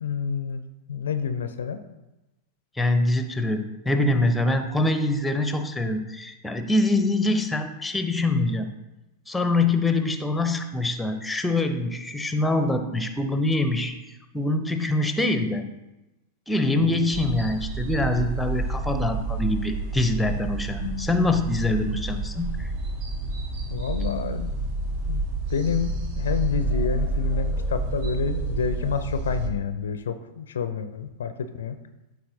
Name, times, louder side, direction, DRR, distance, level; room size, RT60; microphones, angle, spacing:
voice 1, 0.0-0.6 0.9-1.8 16.6-17.0 23.7-24.5 25.1-25.2 25.5-31.8, left 6 dB, 65° left, 10 dB, 0.5 m, -28 dB
voice 2, 2.8-8.7 9.3-13.9 14.3-15.6 16.5-22.7, left 2 dB, 5° left, 7 dB, 0.8 m, -24 dB
sound 1, 17.1-29.5, right 3 dB, 50° right, 1.2 m, -29 dB
13.0 x 4.3 x 2.8 m, 1.0 s
figure-of-eight pair, 90°, 0 cm